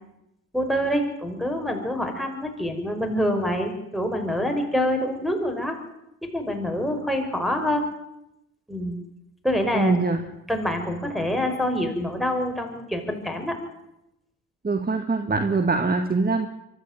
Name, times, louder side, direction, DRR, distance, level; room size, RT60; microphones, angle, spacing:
voice 1, 0.5-5.8 6.3-7.8 8.7-9.0 9.4-9.9 10.3-13.6, equal, ahead, 6 dB, 6.5 m, -26 dB
voice 2, 9.7-10.2 14.6-16.5, right 3 dB, 20° right, 7 dB, 2.1 m, -23 dB
24.0 x 13.0 x 9.4 m, 0.86 s
hypercardioid pair, 50°, 41 cm